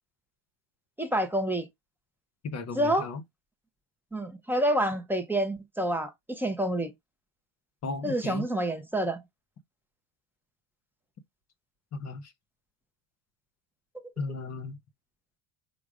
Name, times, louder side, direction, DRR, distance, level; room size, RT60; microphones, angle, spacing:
voice 1, 1.0-1.7 2.7-3.1 4.1-6.9 8.0-9.2, right 1 dB, 5° right, 0.4 m, -28 dB
voice 2, 2.4-3.2 7.8-8.5 11.9-12.2 14.2-14.8, left 3 dB, 35° left, 0.7 m, -35 dB
5.0 x 2.1 x 4.7 m
cardioid pair, 155°, 48 cm